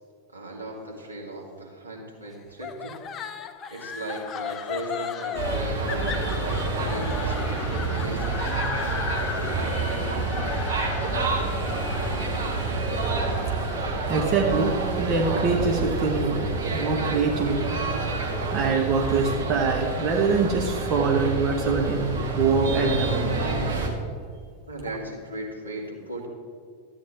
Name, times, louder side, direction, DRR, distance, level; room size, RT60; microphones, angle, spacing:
voice 1, 0.3-3.0 3.7-8.4 24.7-26.3, right 1 dB, 80° right, -2 dB, 2.1 m, -37 dB
sound 1, 2.6-15.8, left 7 dB, 30° left, 0.5 m, -36 dB
sound 2, 5.3-23.9, right 3 dB, 60° right, 1.8 m, -28 dB
voice 2, 13.4-17.8 18.5-23.4, right 4 dB, 35° right, 1 dB, 1.1 m, -25 dB
13.5 x 8.9 x 3.5 m, 2.1 s
figure-of-eight pair, 90°, 0 cm